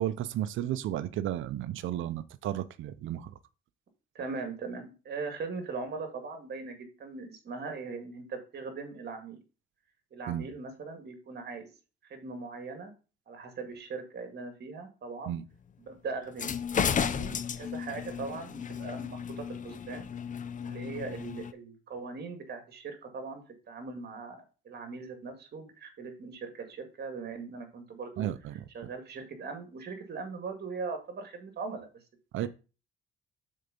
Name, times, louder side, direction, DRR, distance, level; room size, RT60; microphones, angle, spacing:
voice 1, 0.0-3.3 10.3-10.5 15.3-15.5 28.2-28.5 32.3-32.5, right 12 dB, 80° right, 0.6 m, -33 dB
voice 2, 4.1-9.4 10.1-11.7 12.1-12.9 13.3-15.4 15.8-16.6 16.8-20.1 20.6-28.3 28.7-31.9 32.4-32.5, right 4 dB, 55° right, 2.1 m, -40 dB
sound 1, 16.3-21.5, left 7 dB, 40° left, 0.6 m, -34 dB
6.6 x 4.5 x 5.2 m
cardioid pair, 90°, 20 cm